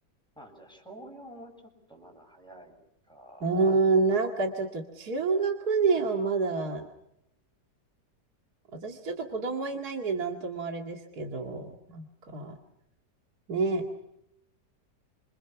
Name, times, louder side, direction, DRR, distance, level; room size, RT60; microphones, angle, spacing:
voice 1, 0.4-2.7 3.1-3.6, right 1 dB, ahead, 2 dB, 7.6 m, -49 dB
voice 2, 3.4-6.8 8.7-12.5 13.5-13.9, right 4 dB, 60° right, 2 dB, 2.7 m, -28 dB
29.0 x 27.5 x 6.0 m, 0.82 s
omnidirectional pair, 1.9 m